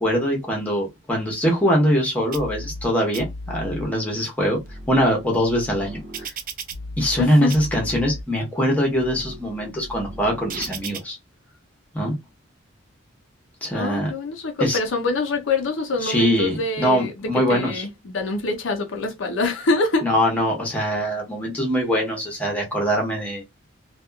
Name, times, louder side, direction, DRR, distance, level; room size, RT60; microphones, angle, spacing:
voice 1, 0.0-4.6 4.9-6.3 7.0-11.2 11.9-12.1 13.6-14.1 14.6-14.8 16.0-17.8 20.0-23.4, equal, 5° left, 0.9 m, -22 dB
sound 1, 2.3-2.8 3.1-3.8 4.4-7.2 7.5-8.2 8.8-11.0, right 1 dB, 45° right, 0.5 m, -35 dB
voice 2, 7.2-7.6 13.7-20.1, left 3 dB, 65° left, 0.5 m, -25 dB
2.8 x 2.3 x 2.3 m
head